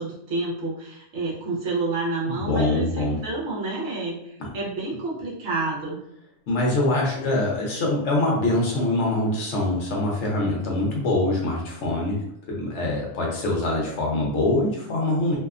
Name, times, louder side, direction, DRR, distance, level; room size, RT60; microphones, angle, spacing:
voice 1, 0.0-6.0, right 2 dB, 60° right, -5 dB, 1.0 m, -29 dB
voice 2, 2.3-3.2 4.4-4.5 6.5-12.2 12.5-15.4, left 2 dB, 65° left, -2 dB, 1.0 m, -24 dB
2.8 x 2.1 x 2.4 m, 0.77 s
omnidirectional pair, 1.4 m